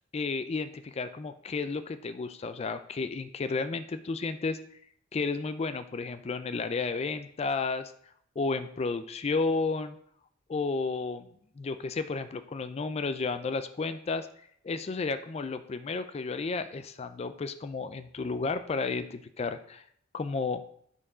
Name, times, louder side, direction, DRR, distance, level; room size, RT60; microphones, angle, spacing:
voice 1, 0.1-4.6 5.1-7.9 8.4-10.0 10.5-11.3 11.6-14.3 14.6-19.8 20.1-20.6, left 4 dB, 30° left, 10 dB, 0.4 m, -32 dB
9.8 x 4.5 x 4.9 m, 0.67 s
head